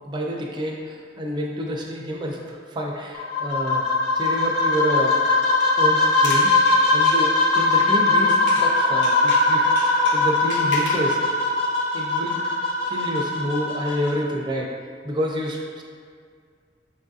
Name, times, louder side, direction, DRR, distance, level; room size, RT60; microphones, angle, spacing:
voice 1, 0.1-3.9 4.2-5.2 5.8-11.2 11.9-12.4 12.9-14.7 15.0-15.8, equal, 25° right, -1 dB, 0.4 m, -28 dB
sound 1, 3.1-14.1, left 2 dB, 35° left, 0.7 m, -20 dB
sound 2, 6.0-8.7 9.0-11.1, left 2 dB, 85° left, 0.6 m, -35 dB
5.7 x 2.4 x 2.6 m, 2.1 s
head